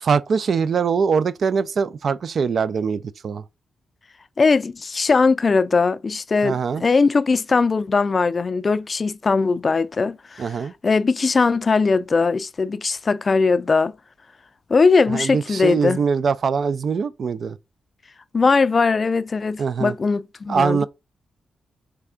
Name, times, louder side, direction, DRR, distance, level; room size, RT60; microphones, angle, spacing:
voice 1, 0.0-3.4 6.4-6.8 10.4-10.7 15.1-17.6 19.6-19.9 20.5-20.9, right 6 dB, 55° right, 0.3 m, -22 dB
voice 2, 4.4-10.5 10.8-13.9 14.7-16.0 18.3-20.9, left 4 dB, 35° left, 0.3 m, -20 dB
3.4 x 3.3 x 3.7 m
cardioid pair, 90°, 0 cm